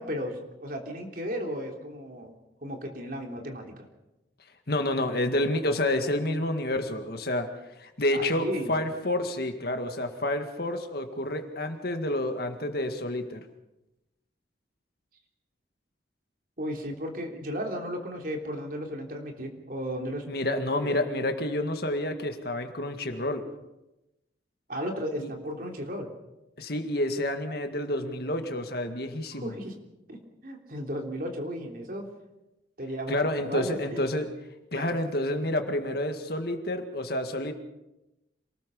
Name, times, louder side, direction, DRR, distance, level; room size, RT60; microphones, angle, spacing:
voice 1, 0.0-2.3 2.6-3.6 8.1-8.7 16.6-20.2 20.7-21.0 24.7-26.1 29.3-29.7 30.1-32.1 32.8-33.2 33.4-34.0 34.7-34.9, equal, 50° right, 2 dB, 3.4 m, -34 dB
voice 2, 4.7-7.5 7.8-13.4 20.3-23.4 25.2-25.3 26.6-29.5 33.1-34.3 34.7-37.5, left 1 dB, 55° left, 6 dB, 2.0 m, -29 dB
27.0 x 19.0 x 5.4 m, 0.96 s
head